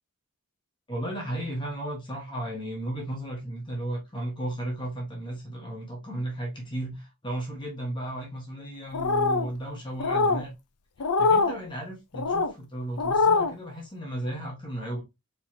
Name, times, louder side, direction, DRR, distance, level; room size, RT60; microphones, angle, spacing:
voice 1, 0.9-10.5 11.2-15.0, right 1 dB, 20° left, 1.3 m, -34 dB
sound 1, 8.9-9.5 10.0-10.4 11.0-11.6 12.1-12.5 13.0-13.5, left 4 dB, 90° left, 0.6 m, -23 dB
4.8 x 4.0 x 2.8 m
head